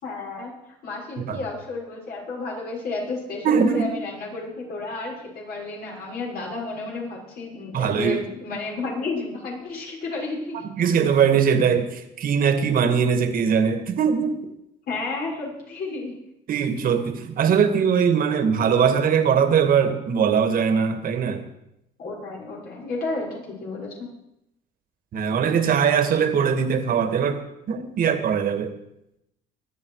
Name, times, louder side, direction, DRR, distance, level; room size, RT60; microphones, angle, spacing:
voice 1, 0.0-0.5 0.8-10.7 14.9-16.2 22.0-24.0 25.4-25.5, left 3 dB, 60° left, -3 dB, 6.6 m, -32 dB
voice 2, 3.4-3.9 7.7-8.2 10.7-14.4 16.5-21.4 25.1-27.4 27.7-28.7, right 7 dB, 55° right, 8 dB, 2.0 m, -21 dB
24.5 x 9.5 x 4.9 m, 0.84 s
cardioid pair, 110°, 17 cm